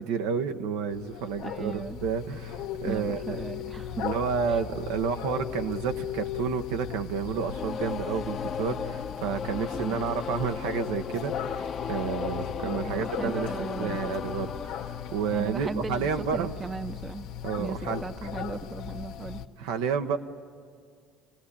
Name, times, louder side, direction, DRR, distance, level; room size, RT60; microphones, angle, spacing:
voice 1, 0.0-3.4 4.0-16.5 17.4-18.3 19.6-20.2, right 6 dB, 90° right, 6 dB, 1.0 m, -30 dB
sound 1, 0.9-19.5, left 9 dB, 85° left, 1.1 m, -38 dB
voice 2, 1.4-2.0 2.8-4.1 4.5-4.6 9.7-10.0 12.6-14.1 15.3-17.3 17.6-19.4, right 4 dB, 25° right, 13 dB, 0.6 m, -37 dB
sound 2, 7.3-16.2, left 6 dB, 45° left, 0.7 m, -36 dB
28.0 x 18.0 x 9.9 m, 2.2 s
supercardioid pair, 90°, 0 cm